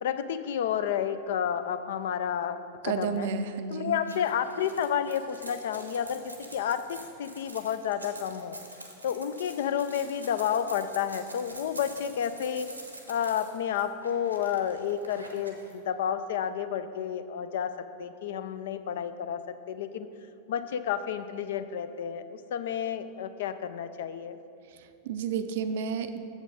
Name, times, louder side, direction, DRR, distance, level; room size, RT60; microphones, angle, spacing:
voice 1, 0.0-2.6 2.8-3.3 3.7-6.2 6.5-8.6 9.0-12.7 13.1-17.7 18.0-19.4 19.7-20.1 20.5-24.4, left 8 dB, 55° left, 11 dB, 0.4 m, -30 dB
voice 2, 2.8-4.0 24.8-26.2, right 6 dB, 55° right, 10 dB, 0.4 m, -31 dB
sound 1, 4.0-15.7, right 1 dB, 85° right, 0.9 m, -47 dB
8.0 x 7.3 x 3.7 m, 2.6 s
figure-of-eight pair, 90°, 0 cm